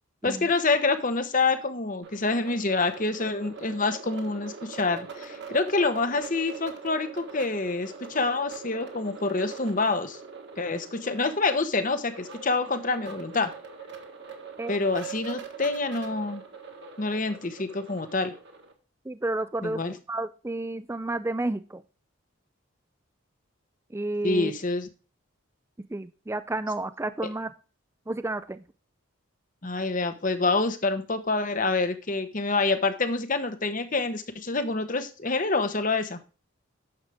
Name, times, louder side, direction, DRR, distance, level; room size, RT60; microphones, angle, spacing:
voice 1, 0.2-10.2 10.6-13.5 14.7-16.4 17.0-18.3 19.6-19.9 24.2-24.9 29.6-36.2, left 3 dB, 40° left, 10 dB, 1.0 m, -27 dB
sound 1, 2.0-18.7, right 6 dB, 50° right, 1.6 m, -42 dB
voice 2, 19.1-19.8 20.1-21.8 23.9-24.5 25.9-27.5 28.1-28.6, right 2 dB, 10° right, 13 dB, 0.3 m, -31 dB
9.7 x 6.6 x 3.5 m, 0.35 s
head